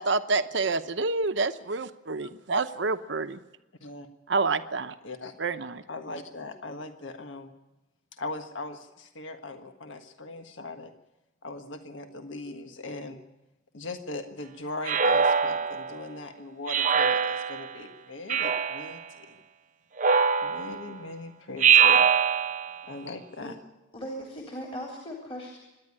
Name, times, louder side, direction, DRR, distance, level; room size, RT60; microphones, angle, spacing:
voice 1, 0.0-3.4 4.3-4.9 5.4-5.8, right 3 dB, 70° right, 10 dB, 0.9 m, -28 dB
voice 2, 5.9-7.5 8.2-10.9 11.4-13.2 13.7-19.4 20.4-22.0 22.9-23.5, left 2 dB, 90° left, 6 dB, 1.5 m, -39 dB
Speech synthesizer, 14.8-16.0 16.7-17.7 18.3-19.0 20.0-20.9 21.6-22.8, right 7 dB, 40° right, 0.7 m, -23 dB
voice 3, 23.9-25.6, equal, 30° left, 0 dB, 3.2 m, -38 dB
25.0 x 10.5 x 9.9 m, 1.0 s
head